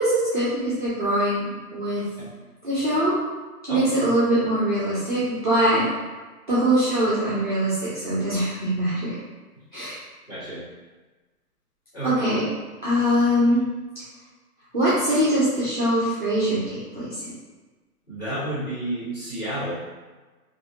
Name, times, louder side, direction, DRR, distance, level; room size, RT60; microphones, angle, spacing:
voice 1, 0.0-1.4 1.7-2.0 2.6-3.2 3.7-5.9 6.5-9.2 9.7-10.0 12.0-12.4 12.8-13.6 14.7-17.3, right 1 dB, 35° right, -10 dB, 0.4 m, -22 dB
voice 2, 10.3-10.6 11.9-12.1 18.1-19.7, right 1 dB, 15° left, -14 dB, 1.1 m, -30 dB
2.7 x 2.5 x 2.3 m, 1.3 s
hypercardioid pair, 165°, 46 cm